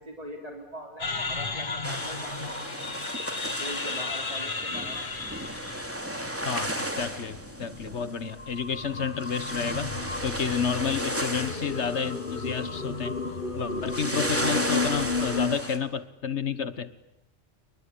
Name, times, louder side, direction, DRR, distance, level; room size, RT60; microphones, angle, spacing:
voice 1, 0.0-2.6 3.6-5.0, equal, 35° right, 1 dB, 3.9 m, -41 dB
sound 1, 1.0-15.6, left 4 dB, 45° left, 1.7 m, -34 dB
sound 2, 1.8-8.2 8.5-8.6 8.8-13.3 13.6-15.8, equal, 10° right, 3.1 m, -34 dB
voice 2, 6.4-13.2 13.5-16.9, left 6 dB, 75° left, 13 dB, 1.7 m, -31 dB
29.0 x 23.5 x 8.5 m, 0.90 s
omnidirectional pair, 1.2 m